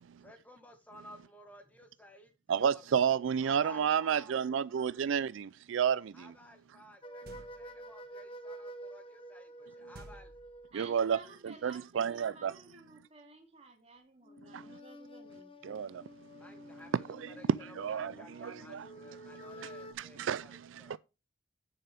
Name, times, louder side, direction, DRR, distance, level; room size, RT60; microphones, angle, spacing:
voice 1, 0.2-2.3 2.6-3.0 3.4-4.4 6.1-10.3 16.3-21.0, equal, 10° left, 1.5 m, -55 dB
voice 2, 2.5-6.3 10.7-12.5 14.5-14.6 15.6-16.0 17.1-17.4 17.6-18.9 19.2-19.4 20.0-21.0, right 7 dB, 75° right, 0.4 m, -31 dB
sound 1, 7.0-10.9 14.2-19.9, equal, 25° left, 1.0 m, -49 dB
sound 2, 7.2-7.9 9.9-11.0, right 1 dB, 50° right, 1.2 m, -53 dB
voice 3, 10.7-15.5, right 2 dB, 30° right, 2.3 m, -54 dB
9.0 x 6.9 x 3.4 m
head